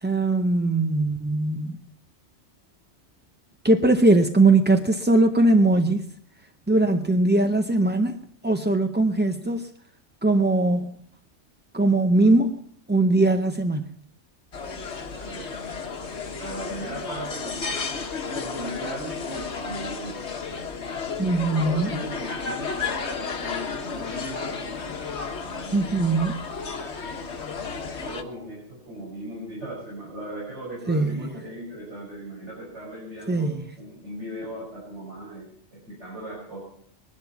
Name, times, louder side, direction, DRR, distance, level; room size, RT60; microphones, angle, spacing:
voice 1, 0.0-1.8 3.6-6.1 6.7-8.2 8.4-9.7 10.2-10.9 11.7-12.6 12.9-13.9 21.2-22.0 25.7-26.4 30.9-31.1 33.3-33.5, right 2 dB, 15° right, 6 dB, 0.5 m, -20 dB
sound 1, 14.5-28.2, left 5 dB, 70° left, 1.6 m, -33 dB
voice 2, 15.2-15.8 16.4-17.9 18.3-20.3 21.6-22.8 23.4-25.2 25.4-25.9 27.8-36.6, right 1 dB, 75° right, -5 dB, 5.6 m, -38 dB
20.0 x 12.0 x 5.9 m, 0.63 s
omnidirectional pair, 1.2 m